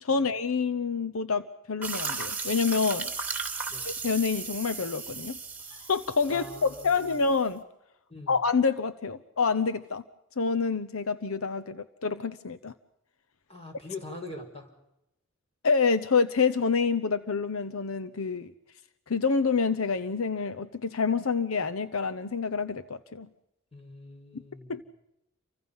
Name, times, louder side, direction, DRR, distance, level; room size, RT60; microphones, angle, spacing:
voice 1, 0.0-3.1 3.8-5.4 5.9-7.6 8.3-10.0 10.4-12.7 15.6-18.5 19.1-23.3 24.7-24.8, left 5 dB, 85° left, 11 dB, 0.9 m, -27 dB
sound 1, 1.8-7.4, right 5 dB, 10° right, 3.0 m, -36 dB
voice 2, 6.3-7.1 8.1-8.4 13.5-14.7 23.7-24.8, left 2 dB, 30° left, 4 dB, 5.6 m, -43 dB
29.5 x 25.0 x 5.6 m, 0.87 s
head